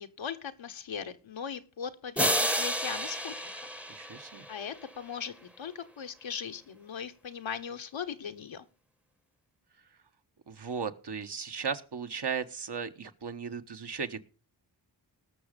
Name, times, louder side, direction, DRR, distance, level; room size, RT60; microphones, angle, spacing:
voice 1, 0.0-3.3 4.5-8.7, left 7 dB, 75° left, 7 dB, 1.2 m, -39 dB
sound 1, 2.2-4.8, equal, 5° right, 0.9 m, -31 dB
voice 2, 3.9-4.4 10.5-14.2, right 6 dB, 60° right, 7 dB, 1.3 m, -36 dB
19.0 x 6.4 x 5.2 m, 0.36 s
cardioid pair, 50°, 46 cm